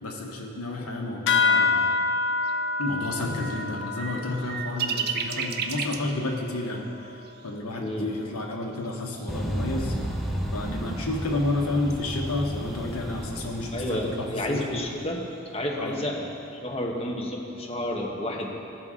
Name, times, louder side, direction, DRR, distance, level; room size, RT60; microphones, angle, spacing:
voice 1, 0.0-1.8 2.8-7.2 7.4-9.9 10.5-14.8 15.8-16.0, left 2 dB, 85° left, 0 dB, 1.1 m, -31 dB
sound 1, 1.3-6.2, left 4 dB, 55° left, 0.4 m, -27 dB
sound 2, 2.4-2.5 3.1-6.2 6.6-6.7 7.2-7.5 7.8-7.9 8.1-9.3 9.8-9.9 11.0-14.3 14.8-16.0, right 6 dB, 45° right, 0.4 m, -36 dB
voice 2, 7.8-8.1 13.7-15.2 15.5-16.3 16.6-18.5, left 1 dB, 25° left, -1 dB, 1.1 m, -30 dB
sound 3, 9.3-15.1, equal, ahead, 0.5 m, -33 dB
14.5 x 5.4 x 3.7 m, 2.8 s
head